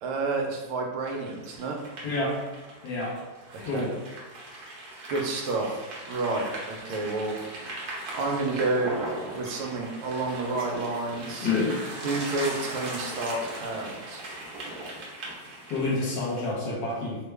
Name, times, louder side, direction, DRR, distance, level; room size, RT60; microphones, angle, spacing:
voice 1, 0.0-1.8 3.5-3.9 5.1-5.8 6.1-7.4 8.1-9.0 9.3-11.5 12.0-14.2, right 3 dB, 80° right, 0 dB, 1.4 m, -30 dB
sound 1, 1.0-16.5, right 2 dB, 60° right, 1.0 m, -39 dB
voice 2, 2.0-2.4 2.8-3.2 3.6-3.9 11.4-11.8 15.7-17.2, left 3 dB, 65° left, -4 dB, 1.4 m, -28 dB
3.5 x 2.2 x 3.3 m, 1.2 s
omnidirectional pair, 2.4 m